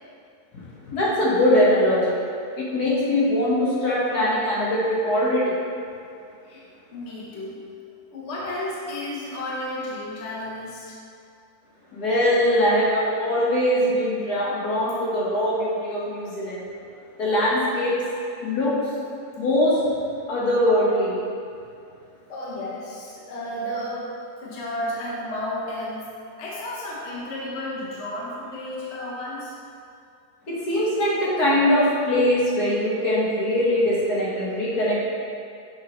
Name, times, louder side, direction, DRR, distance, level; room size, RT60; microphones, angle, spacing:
voice 1, 0.9-2.2 2.6-5.5 11.9-16.6 17.2-17.9 18.4-18.7 19.4-19.8 20.3-21.2 30.5-35.0, left 1 dB, 70° left, -7 dB, 1.8 m, -22 dB
voice 2, 6.9-7.6 8.1-11.0 22.3-24.1 24.4-26.1 26.4-29.5, left 1 dB, 50° left, -6 dB, 1.1 m, -32 dB
6.4 x 4.9 x 3.0 m, 2.4 s
omnidirectional pair, 1.7 m